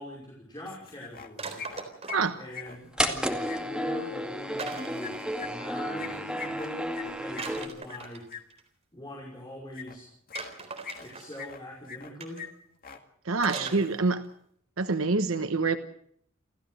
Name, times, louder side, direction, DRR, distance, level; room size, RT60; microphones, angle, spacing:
voice 1, 0.0-1.7 2.3-5.2 5.4-8.3 8.9-10.1 11.0-12.5 13.5-13.8, equal, 20° left, -2 dB, 5.5 m, -42 dB
sound 1, 0.7-1.3 1.6-3.6 5.0-8.4 9.7-10.0 10.3-11.1 11.3-12.1 12.4-12.5 12.8-13.0, left 7 dB, 45° left, 2.1 m, -42 dB
sound 2, 1.4-2.4 4.6-5.3 7.4-8.6 10.3-11.5 12.2-12.5 13.4-14.0 14.2-14.3, right 4 dB, 30° right, 3.9 m, -40 dB
sound 3, 3.0-7.7, equal, 5° right, 2.2 m, -32 dB
voice 2, 13.3-14.2 14.8-15.8, right 3 dB, 75° right, 9 dB, 1.1 m, -26 dB
29.5 x 14.5 x 6.5 m, 0.66 s
head